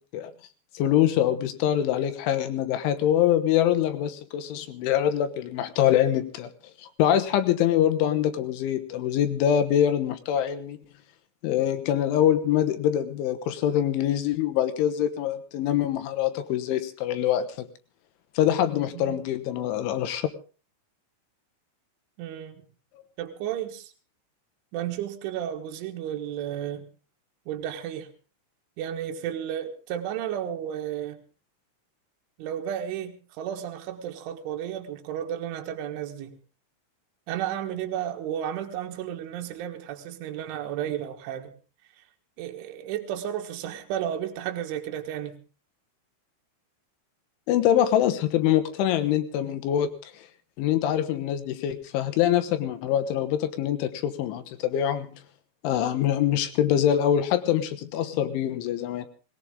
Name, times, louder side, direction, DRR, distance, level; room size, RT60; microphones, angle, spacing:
voice 1, 0.7-6.5 6.8-10.8 11.4-17.7 18.4-20.3 47.5-50.1 50.6-55.1 55.6-59.1, left 10 dB, 75° left, 11 dB, 3.4 m, -24 dB
voice 2, 18.9-19.3 22.2-22.6 23.2-23.9 24.7-26.9 27.5-28.1 28.8-31.2 32.4-36.4 37.3-41.5 42.4-45.4, right 10 dB, 70° right, 4 dB, 3.9 m, -33 dB
19.0 x 18.5 x 3.8 m, 0.36 s
omnidirectional pair, 5.9 m